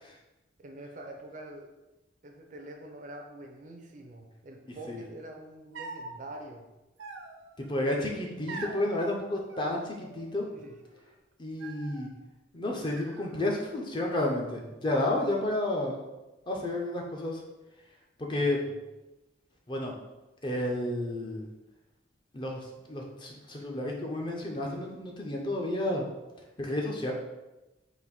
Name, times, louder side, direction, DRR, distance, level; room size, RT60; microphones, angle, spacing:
voice 1, 0.6-1.7 2.2-6.7 10.5-10.8 18.3-18.7, right 1 dB, 40° right, 3 dB, 0.4 m, -45 dB
sound 1, 5.7-6.2 7.0-7.7 8.5-8.9 9.5-10.3 10.6-11.1 11.6-12.1 12.8-13.7 14.1-14.8, right 3 dB, 90° right, 0.6 m, -45 dB
voice 2, 7.6-10.5 11.4-12.1 12.5-16.0 16.5-17.4 18.2-18.6 19.7-19.9 20.4-21.5 22.3-26.0 26.6-27.1, left 1 dB, 25° left, 0 dB, 0.5 m, -31 dB
4.0 x 2.5 x 4.1 m, 1.0 s
head